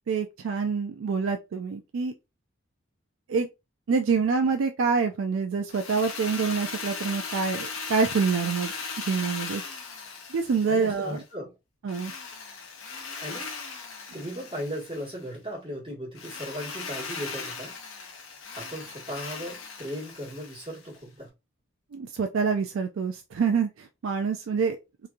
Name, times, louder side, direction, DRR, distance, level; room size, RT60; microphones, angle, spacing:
voice 1, 0.1-2.1 3.3-3.5 3.9-9.6 10.3-11.2 11.8-12.1 21.9-24.8, right 5 dB, 75° right, 0.4 m, -26 dB
Drill, 5.7-11.2 11.9-15.2 16.2-21.0, left 5 dB, 85° left, 0.7 m, -38 dB
voice 2, 10.7-11.5 12.2-12.5 13.2-17.7 18.5-21.3, equal, 25° right, 1.4 m, -37 dB
2.9 x 2.5 x 2.3 m
head